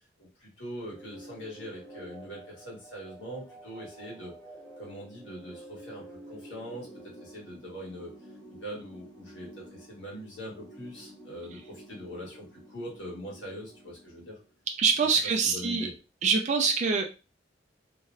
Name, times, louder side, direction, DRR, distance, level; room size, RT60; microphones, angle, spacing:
voice 1, 0.2-4.3 4.8-8.1 8.5-14.4 15.4-15.9, equal, 70° left, -3 dB, 1.5 m, -42 dB
sound 1, 0.8-14.6, right 1 dB, 5° left, 0.7 m, -50 dB
voice 2, 14.8-15.9 16.2-17.0, right 5 dB, 40° right, 2 dB, 0.4 m, -24 dB
3.0 x 2.5 x 2.5 m, 0.31 s
head